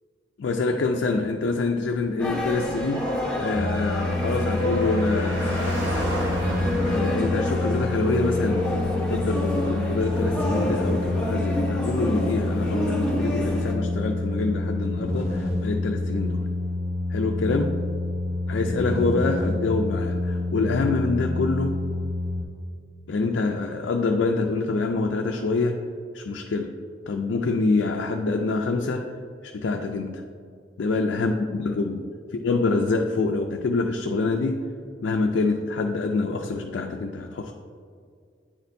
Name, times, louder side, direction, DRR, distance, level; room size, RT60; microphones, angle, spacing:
voice 1, 0.4-3.1 3.4-6.1 6.8-16.4 17.1-17.8 18.5-21.8 23.1-25.8 26.1-26.7 27.1-29.1 29.4-30.2 30.8-32.0 32.4-34.6 35.0-37.5, left 3 dB, 65° left, 3 dB, 0.4 m, -26 dB
sound 1, 2.2-13.7, left 1 dB, 5° left, 0.9 m, -29 dB
Car passing by, 2.2-14.0 14.3-14.4, equal, 65° right, 1.5 m, -38 dB
sound 2, 3.6-22.4, left 2 dB, 35° right, 0.7 m, -28 dB
9.7 x 4.2 x 2.6 m, 2.2 s
head